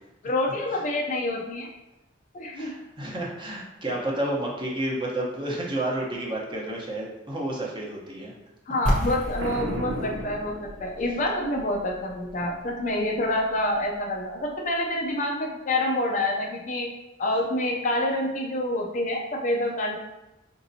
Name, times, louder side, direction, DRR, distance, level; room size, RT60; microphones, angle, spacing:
voice 1, 0.2-1.7 2.3-2.7 8.7-16.9 17.2-20.0, left 1 dB, 40° left, 0 dB, 0.5 m, -27 dB
voice 2, 2.5-8.3, right 1 dB, 25° right, -4 dB, 0.8 m, -30 dB
sound 1, 8.9-14.6, equal, 5° left, 0.7 m, -33 dB
Boom, 9.4-11.2, right 1 dB, 90° right, 0.6 m, -34 dB
5.1 x 2.8 x 2.7 m, 0.98 s
head